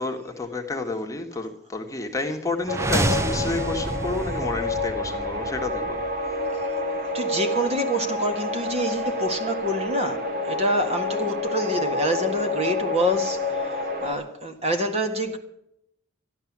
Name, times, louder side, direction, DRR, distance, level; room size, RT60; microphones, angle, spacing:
voice 1, 0.0-6.0, left 3 dB, 15° left, 1.4 m, -30 dB
sound 1, 2.6-6.6, right 1 dB, 15° right, 0.5 m, -29 dB
sound 2, 2.7-14.1, left 2 dB, 50° right, 2.4 m, -28 dB
voice 2, 7.1-15.4, equal, 30° right, 1.7 m, -27 dB
13.5 x 11.5 x 7.3 m
head